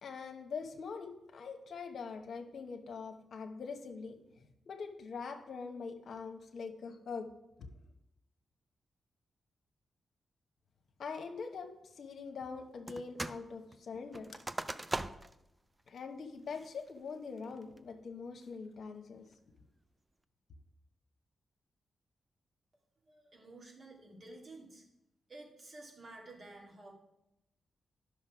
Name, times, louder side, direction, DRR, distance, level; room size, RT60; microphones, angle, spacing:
voice 1, 0.0-4.2 4.7-7.3 7.6-7.7 11.0-11.7 12.0-14.4 15.9-19.3, left 5 dB, 70° left, 6 dB, 1.0 m, -43 dB
sound 1, 12.9-13.4 13.7-15.4 15.9-16.0 16.5-16.9 17.4-17.8, right 2 dB, 20° right, 0.6 m, -40 dB
voice 2, 23.1-24.8 25.3-26.9, right 2 dB, 55° right, -2 dB, 2.9 m, -52 dB
10.5 x 6.4 x 4.9 m, 0.87 s
supercardioid pair, 45°, 0 cm